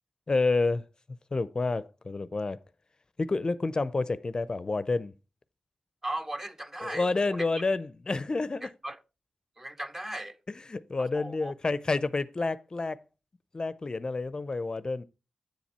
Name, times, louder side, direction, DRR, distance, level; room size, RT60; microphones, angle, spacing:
voice 1, 0.3-0.8 1.3-2.6 3.2-5.1 6.8-8.7 10.5-13.0 13.5-15.0, left 3 dB, 40° left, 0.5 m, -29 dB
voice 2, 6.0-7.4 8.6-9.0 9.6-10.4 11.0-11.5, right 1 dB, 20° right, 0.7 m, -37 dB
7.8 x 7.2 x 4.2 m
cardioid pair, 65°, 2 cm